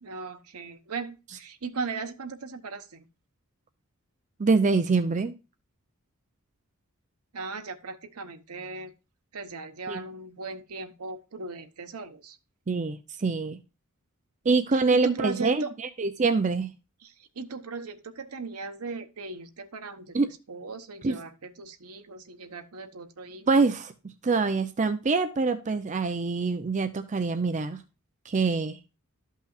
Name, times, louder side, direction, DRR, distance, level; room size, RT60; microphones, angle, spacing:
voice 1, 0.0-3.1 7.3-8.9 9.3-12.4 14.7-15.7 17.0-20.2 20.5-23.6, right 4 dB, 85° right, 7 dB, 0.9 m, -38 dB
voice 2, 4.4-5.3 9.9-10.0 12.7-13.6 14.4-16.7 20.1-20.3 21.0-21.2 23.5-23.9 24.2-27.8 28.3-28.8, right 4 dB, 35° right, 10 dB, 0.5 m, -25 dB
12.5 x 5.6 x 2.4 m, 0.29 s
head